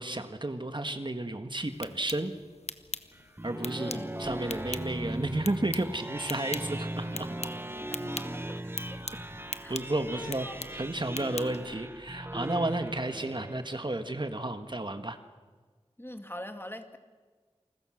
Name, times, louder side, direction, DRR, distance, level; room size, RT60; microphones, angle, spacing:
voice 1, 0.0-2.3 3.4-7.4 9.7-15.2, right 2 dB, 45° right, 8 dB, 1.6 m, -32 dB
sound 1, 1.6-11.8, left 3 dB, 75° left, 0.9 m, -43 dB
sound 2, 3.1-14.0, right 1 dB, 20° right, 1.4 m, -38 dB
voice 2, 3.8-4.1 7.9-8.3 9.6-9.8 10.1-10.6 16.0-17.0, left 1 dB, 20° left, 7 dB, 2.0 m, -42 dB
28.5 x 21.0 x 6.5 m, 1.4 s
wide cardioid pair, 45°, 11 cm